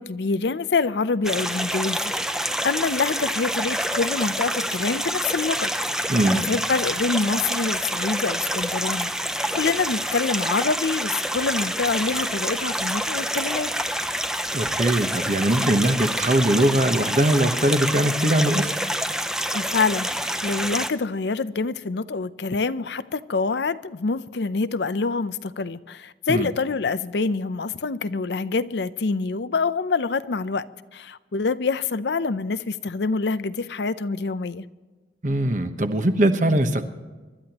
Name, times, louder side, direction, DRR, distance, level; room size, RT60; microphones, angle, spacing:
voice 1, 0.0-9.1 9.5-13.7 19.5-30.6 30.9-34.7, left 4 dB, 75° left, 0.6 m, -26 dB
sound 1, 1.2-20.9, equal, 5° right, 0.6 m, -27 dB
voice 2, 6.1-6.5 14.5-18.7 26.3-26.5 35.2-36.8, right 1 dB, 45° right, 1.1 m, -21 dB
25.0 x 12.5 x 3.0 m
head